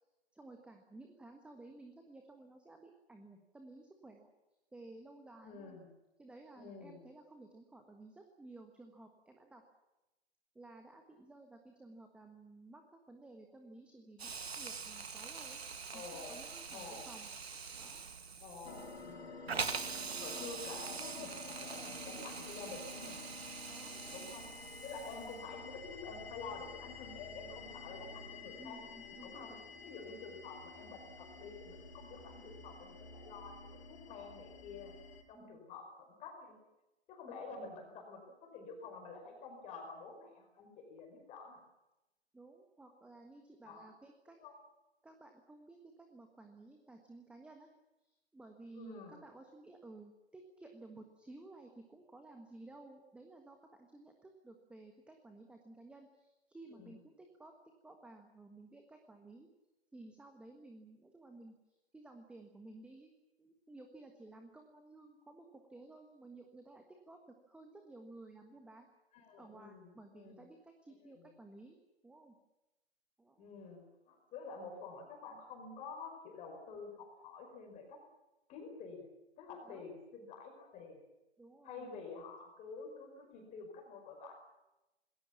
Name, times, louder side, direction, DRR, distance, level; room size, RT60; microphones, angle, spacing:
voice 1, 0.3-4.3 4.7-5.8 6.2-9.6 10.5-12.8 13.1-15.6 15.9-17.3 17.7-18.0 20.3-20.5 23.7-24.3 28.6-29.6 35.3-35.6 37.2-37.6 42.3-44.4 45.0-47.7 48.0-57.5 57.8-59.5 59.9-63.1 63.4-67.2 67.5-68.9 69.4-71.8 72.0-72.3 73.2-73.5 79.6-79.9 81.4-82.0, right 2 dB, 5° right, 4 dB, 1.5 m, -55 dB
voice 2, 5.4-5.9 6.6-7.0 15.9-16.4 16.7-17.1 18.4-19.8 20.2-23.4 24.1-24.5 24.8-28.8 29.2-29.5 29.8-35.0 35.3-36.6 37.1-41.6 43.6-43.9 44.4-44.5 48.8-49.2 56.7-56.9 69.1-70.4 71.1-71.3 73.4-78.0 78.5-79.1 79.4-81.0 81.6-84.3, left 4 dB, 20° left, 3 dB, 5.2 m, -49 dB
Hiss, 14.2-25.5, right 5 dB, 70° right, 2.2 m, -44 dB
sound 1, 18.6-35.2, left 4 dB, 75° left, 5.6 m, -51 dB
27.0 x 20.0 x 7.2 m, 0.99 s
figure-of-eight pair, 125°, 33 cm